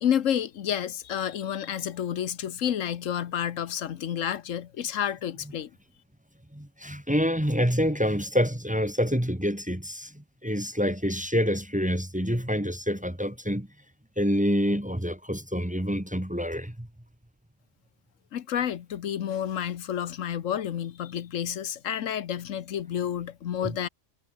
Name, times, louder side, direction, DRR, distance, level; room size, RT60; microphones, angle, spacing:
voice 1, 0.0-5.7 18.3-23.9, left 9 dB, 80° left, 1.3 m, -30 dB
voice 2, 6.5-13.7 14.2-16.9 23.6-23.7, equal, 5° right, 1.7 m, -27 dB
omnidirectional pair, 1.3 m